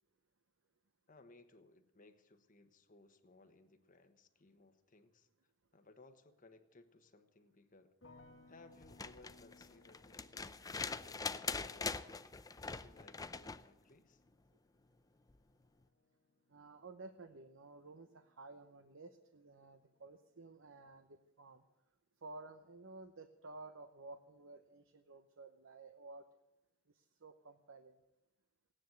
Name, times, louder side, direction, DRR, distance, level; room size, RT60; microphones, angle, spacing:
voice 1, 1.1-5.3 5.7-7.9 8.5-14.2, left 2 dB, 45° left, 8 dB, 1.2 m, -63 dB
sound 1, 8.0-19.1 19.4-20.1, left 2 dB, 70° left, 1.4 m, -67 dB
sound 2, 8.8-13.7 15.3-15.4, left 4 dB, 20° left, 0.5 m, -43 dB
voice 2, 16.5-21.6 22.2-26.2 26.9-28.0, right 3 dB, 80° right, 8 dB, 0.8 m, -54 dB
17.0 x 10.0 x 7.8 m, 0.97 s
head